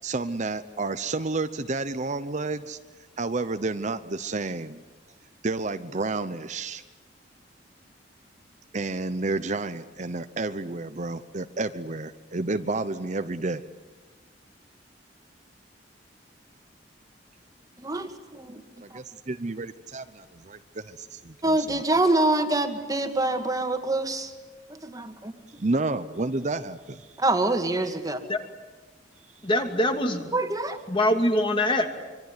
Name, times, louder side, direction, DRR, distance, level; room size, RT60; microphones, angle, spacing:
voice 1, 0.0-2.8 3.2-4.8 5.4-6.8 8.7-13.6 18.8-21.8 25.6-27.1, right 3 dB, 40° right, 10 dB, 0.8 m, -30 dB
voice 2, 17.8-18.6 21.4-24.3 24.7-25.3 27.2-28.2 30.3-30.8, right 2 dB, 20° right, 6 dB, 2.1 m, -25 dB
voice 3, 29.4-30.2 30.9-31.9, left 1 dB, 30° left, 5 dB, 2.7 m, -23 dB
25.5 x 24.0 x 9.6 m, 1.3 s
head